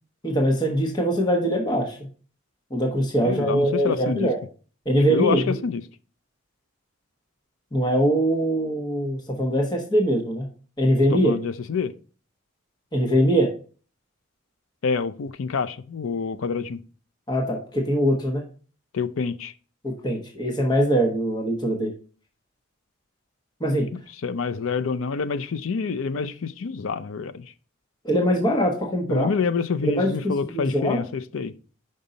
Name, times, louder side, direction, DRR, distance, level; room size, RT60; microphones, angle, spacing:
voice 1, 0.2-2.0 2.7-4.4 4.8-5.5 7.7-10.5 10.8-11.3 12.9-13.5 17.3-18.4 19.8-21.9 23.6-23.9 28.0-29.3 29.8-31.0, equal, 20° left, 1.1 m, -22 dB
voice 2, 3.2-4.3 5.1-5.8 11.1-11.9 14.8-16.8 18.9-19.5 24.2-27.4 29.1-31.5, left 5 dB, 80° left, 0.5 m, -27 dB
5.4 x 5.3 x 3.9 m
head